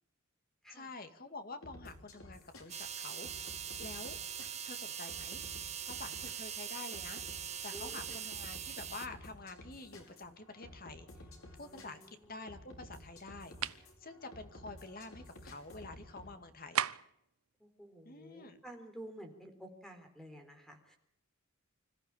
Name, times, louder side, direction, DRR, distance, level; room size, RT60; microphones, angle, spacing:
voice 1, 0.7-3.3 3.8-4.2 4.7-5.4 5.8-7.2 7.6-11.3 11.6-16.8 18.0-18.6, left 3 dB, 45° left, 8 dB, 2.2 m, -48 dB
sound 1, 1.6-16.3, left 1 dB, 75° left, 6.0 m, -53 dB
sound 2, 2.7-9.1, right 9 dB, 30° right, 1.8 m, -42 dB
voice 2, 7.7-8.2 11.6-12.6 17.6-21.0, right 1 dB, ahead, 5 dB, 3.9 m, -52 dB
sound 3, 13.6-13.9 16.7-17.2, right 9 dB, 85° right, 0.8 m, -34 dB
26.0 x 15.0 x 8.6 m, 0.76 s
head